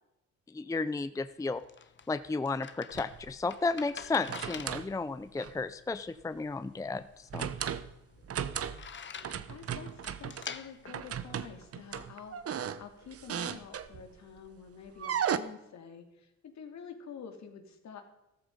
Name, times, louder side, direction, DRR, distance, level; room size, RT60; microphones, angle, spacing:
voice 1, 0.5-1.6 2.1-7.5, left 3 dB, 10° left, 13 dB, 0.5 m, -33 dB
sound 1, 1.2-12.1, left 6 dB, 40° left, 1.1 m, -48 dB
sound 2, 2.9-3.3 4.0-4.9 5.4-5.6 7.3-7.9 8.2-8.9 9.2-10.5 10.9-14.2 15.0-15.4, right 8 dB, 50° right, 1.0 m, -36 dB
voice 2, 8.3-8.9 9.5-18.0, left 7 dB, 65° left, 5 dB, 2.7 m, -48 dB
14.0 x 13.5 x 5.4 m, 0.89 s
cardioid pair, 90°, 30 cm